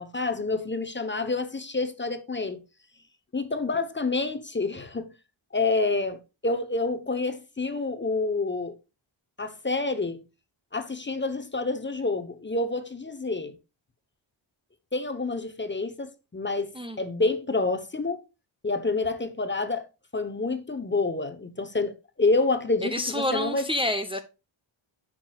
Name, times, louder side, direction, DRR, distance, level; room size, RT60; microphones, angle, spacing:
voice 1, 0.0-2.6 3.3-5.1 5.5-8.8 9.4-10.2 10.7-13.5 14.9-18.2 18.6-19.9 20.1-23.6, left 3 dB, 20° left, 0.9 m, -28 dB
voice 2, 22.8-24.2, left 1 dB, 10° right, 0.7 m, -28 dB
10.5 x 6.1 x 2.3 m
wide cardioid pair, 135°, 50 cm